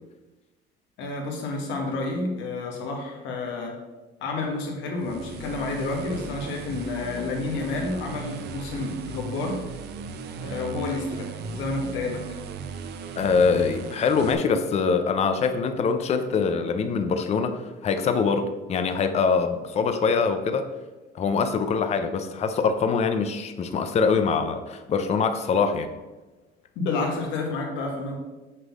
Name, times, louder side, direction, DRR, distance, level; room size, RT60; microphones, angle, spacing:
voice 1, 1.0-3.8 4.2-9.6 10.4-12.2 26.7-28.2, left 3 dB, 80° left, 1 dB, 1.7 m, -30 dB
sound 1, 5.0-14.3, right 5 dB, 65° right, 0.7 m, -37 dB
voice 2, 13.2-20.7 21.1-25.9, left 5 dB, 35° left, 7 dB, 0.6 m, -24 dB
6.6 x 3.8 x 6.0 m, 1.1 s
cardioid pair, 130°, 19 cm